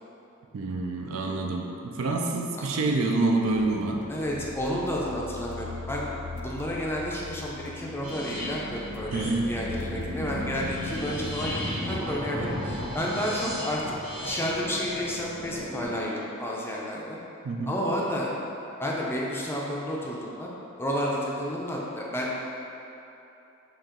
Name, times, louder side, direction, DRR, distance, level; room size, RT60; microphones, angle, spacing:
voice 1, 0.5-4.1 9.1-9.5 17.4-17.8, right 2 dB, 65° right, 1 dB, 0.4 m, -27 dB
sound 1, 3.4-13.0, left 4 dB, 75° left, 0.3 m, -41 dB
voice 2, 4.1-6.1 6.4-13.8 14.2-17.2 17.7-18.3 18.8-20.5 20.8-22.4, equal, 10° left, -4 dB, 0.4 m, -31 dB
sound 2, 8.0-15.9, equal, 40° right, 1.1 m, -35 dB
4.3 x 2.9 x 3.7 m, 2.9 s
head